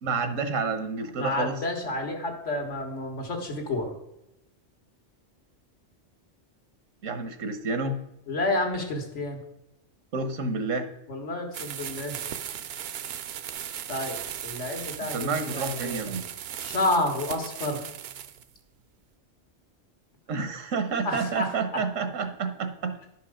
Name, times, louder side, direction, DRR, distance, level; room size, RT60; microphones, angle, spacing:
voice 1, 0.0-1.6 7.0-8.0 10.1-10.9 15.0-16.3 20.3-23.1, right 4 dB, 85° right, 8 dB, 1.4 m, -29 dB
voice 2, 1.2-3.9 8.3-9.4 11.1-12.1 13.9-16.0 16.6-17.8 21.0-21.5, left 2 dB, 70° left, 2 dB, 1.9 m, -30 dB
sound 1, 11.5-18.4, right 9 dB, 65° right, 0.7 m, -37 dB
11.0 x 5.2 x 5.0 m, 0.85 s
omnidirectional pair, 1.3 m